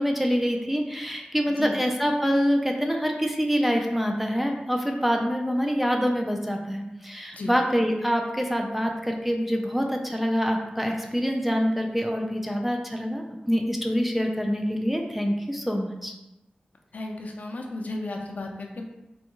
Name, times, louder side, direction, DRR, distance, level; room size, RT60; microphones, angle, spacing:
voice 1, 0.0-16.1, equal, 5° right, 2 dB, 0.3 m, -25 dB
voice 2, 16.9-18.9, left 2 dB, 55° left, 2 dB, 0.4 m, -34 dB
3.4 x 2.3 x 2.9 m, 0.95 s
wide cardioid pair, 110°, 3 cm